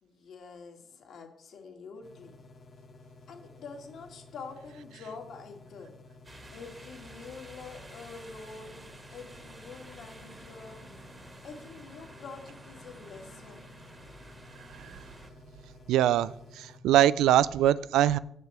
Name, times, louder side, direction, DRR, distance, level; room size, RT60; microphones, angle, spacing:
voice 1, 0.0-2.4 3.3-5.9 6.5-10.9 11.2-13.7, left 4 dB, 65° left, 2 dB, 2.0 m, -46 dB
sound 1, 2.0-16.8, left 3 dB, 45° left, 1.5 m, -53 dB
sound 2, 6.2-15.3, right 1 dB, 25° right, 1.9 m, -51 dB
voice 2, 15.9-18.2, right 12 dB, 85° right, 17 dB, 0.4 m, -23 dB
7.6 x 5.7 x 7.4 m, 0.71 s
cardioid pair, 90°, 0 cm